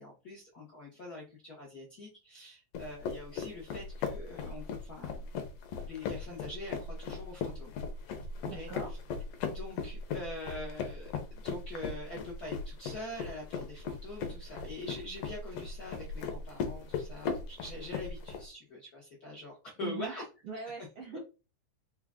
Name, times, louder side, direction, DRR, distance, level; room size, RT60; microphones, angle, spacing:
voice 1, 0.0-5.1 5.8-7.7 8.5-9.0 9.5-20.2 21.1-21.2, left 2 dB, 90° left, -3 dB, 0.8 m, -44 dB
sound 1, 2.7-18.4, left 5 dB, 70° left, 1.5 m, -38 dB
voice 2, 8.4-8.9 19.8-20.1 20.4-21.2, right 4 dB, 75° right, 1 dB, 1.3 m, -41 dB
5.0 x 2.4 x 3.5 m, 0.32 s
omnidirectional pair, 3.3 m